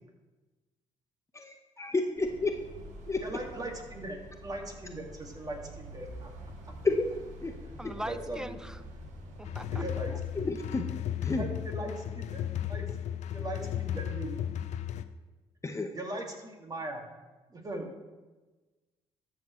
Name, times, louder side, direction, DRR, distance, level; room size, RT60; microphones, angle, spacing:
voice 1, 1.8-2.5 3.1-3.2 6.8-7.0 7.4-7.5 10.4-10.9 11.2-11.4 15.6-15.9, left 3 dB, 25° left, 5 dB, 0.8 m, -29 dB
sound 1, 2.2-10.6, equal, 75° right, 1.3 m, -47 dB
voice 2, 3.2-6.3 8.0-8.5 9.7-10.5 11.3-12.9 13.3-14.4 15.9-17.0 17.5-17.9, right 1 dB, 30° right, 2 dB, 2.0 m, -39 dB
voice 3, 7.8-8.8 9.4-9.8 10.1-10.2, equal, 5° right, 13 dB, 0.5 m, -40 dB
sound 2, 9.4-15.0, left 10 dB, 65° left, 0.5 m, -35 dB
13.0 x 6.4 x 3.1 m, 1.2 s
supercardioid pair, 65°, 12 cm